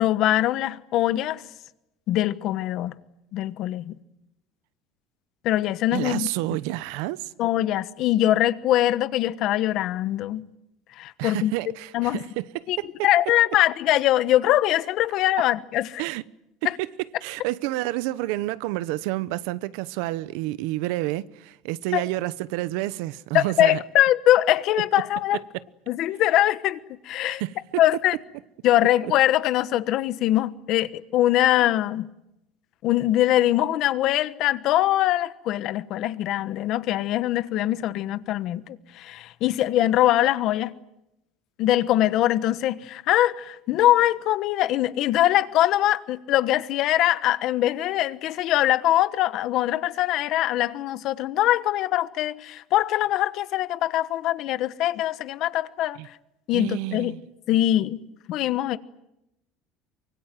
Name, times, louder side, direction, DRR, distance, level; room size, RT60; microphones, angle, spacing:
voice 1, 0.0-1.4 2.1-3.0 3.3-3.9 5.4-6.3 7.4-10.4 11.0-11.5 11.9-12.2 12.7-12.8 13.0-16.0 16.6-16.8 21.9-22.0 23.3-25.4 25.9-26.8 27.0-27.4 27.8-28.1 28.6-32.1 32.8-40.7 41.6-56.1 56.5-57.1 57.5-58.0 58.3-58.8, left 13 dB, 45° left, 1.2 m, -22 dB
voice 2, 5.9-7.3 11.2-12.9 16.0-16.2 16.8-16.9 17.2-23.8 25.5-25.6 27.2-27.8 56.0-56.1 56.5-57.2, right 17 dB, 70° right, 1.0 m, -29 dB
24.5 x 24.0 x 9.2 m
cardioid pair, 170°, 0 cm